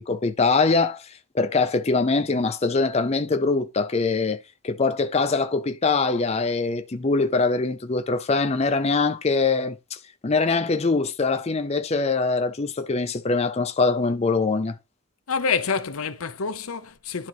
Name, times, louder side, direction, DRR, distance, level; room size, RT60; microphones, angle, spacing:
voice 1, 0.0-4.4 4.6-14.7, left 3 dB, 30° left, 0.5 m, -23 dB
voice 2, 15.3-17.3, left 5 dB, 80° left, 0.7 m, -27 dB
11.5 x 3.9 x 3.0 m
head